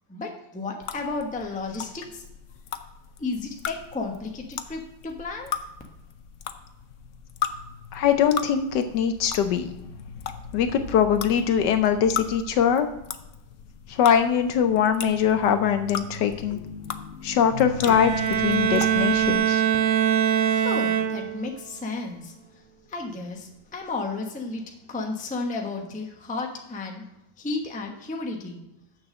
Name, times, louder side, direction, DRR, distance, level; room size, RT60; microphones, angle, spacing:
voice 1, 0.1-2.2 3.2-5.5 19.8-27.0 27.4-28.6, left 3 dB, 5° left, 2 dB, 0.6 m, -33 dB
sound 1, 0.8-19.3, left 8 dB, 85° left, 0.6 m, -37 dB
voice 2, 7.9-9.7 10.5-12.9 13.9-16.6 17.2-18.1 18.4-19.6, left 8 dB, 70° left, 9 dB, 1.2 m, -22 dB
Bowed string instrument, 17.8-21.5, right 9 dB, 70° right, 1.6 m, -23 dB
7.1 x 6.5 x 6.3 m, 0.91 s
omnidirectional pair, 2.1 m